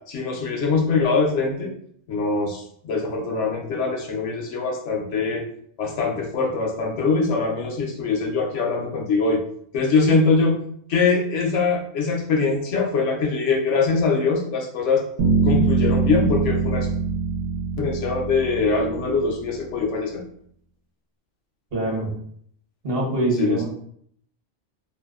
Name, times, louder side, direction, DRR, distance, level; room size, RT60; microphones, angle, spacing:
voice 1, 0.1-1.7 2.1-5.4 5.8-9.4 9.7-10.6 10.9-15.0 15.4-16.9 17.8-20.2 23.4-23.6, left 4 dB, 80° left, 1 dB, 0.9 m, -22 dB
sound 1, 15.2-19.2, right 4 dB, 85° right, 1.0 m, -23 dB
voice 2, 21.7-22.1 22.8-23.6, right 2 dB, 55° right, -4 dB, 1.1 m, -24 dB
2.7 x 2.0 x 2.2 m, 0.64 s
omnidirectional pair, 1.2 m